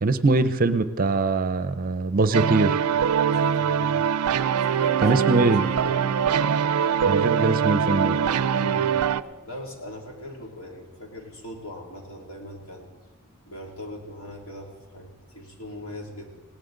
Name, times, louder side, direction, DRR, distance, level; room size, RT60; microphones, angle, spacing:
voice 1, 0.0-2.8 5.0-5.6 7.1-8.2, right 3 dB, 40° right, 13 dB, 0.6 m, -22 dB
sound 1, 2.3-9.2, right 8 dB, 85° right, 0.4 m, -23 dB
voice 2, 3.2-4.0 4.7-5.5 5.8-6.0 8.5-8.9 9.5-12.9 13.5-16.4, left 1 dB, 70° left, 1 dB, 2.6 m, -40 dB
Bowed string instrument, 4.2-9.6, left 1 dB, 10° left, 5.7 m, -39 dB
19.0 x 17.0 x 3.9 m, 1.2 s
head